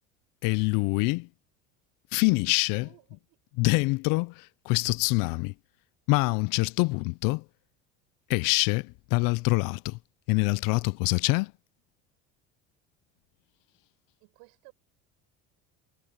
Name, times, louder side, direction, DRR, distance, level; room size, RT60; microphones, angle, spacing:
voice 1, 0.4-1.3 2.1-2.9 3.6-5.5 6.1-7.4 8.3-10.0 10.3-11.5, left 26 dB, 65° left, 0.6 m, -25 dB
voice 2, 2.8-3.4 14.2-14.7, right 29 dB, 75° right, 5.2 m, -56 dB
supercardioid pair, 95°, 35 cm